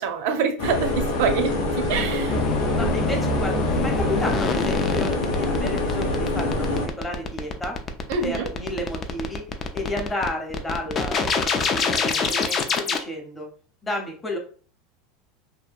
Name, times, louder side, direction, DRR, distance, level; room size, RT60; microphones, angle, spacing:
voice 1, 0.0-2.4 8.1-8.5, right 6 dB, 65° right, 6 dB, 0.5 m, -26 dB
sound 1, 0.6-6.9, left 2 dB, 75° left, 0.7 m, -25 dB
sound 2, 2.3-13.0, left 4 dB, 30° left, 0.3 m, -25 dB
voice 2, 2.7-7.8 8.2-9.4 9.7-13.5 13.8-14.4, left 1 dB, 15° left, 1 dB, 0.7 m, -32 dB
2.7 x 2.2 x 2.4 m, 0.41 s
supercardioid pair, 135°, 0 cm